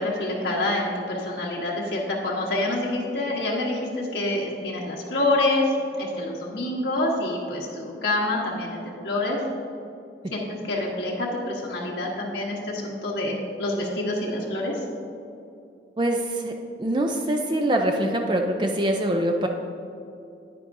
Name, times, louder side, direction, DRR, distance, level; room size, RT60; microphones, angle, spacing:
voice 1, 0.0-9.4 10.3-14.8, left 2 dB, 80° left, -4 dB, 1.2 m, -27 dB
voice 2, 16.0-16.5 16.8-19.5, right 1 dB, 25° right, 3 dB, 0.4 m, -24 dB
10.0 x 9.7 x 2.6 m, 2.6 s
head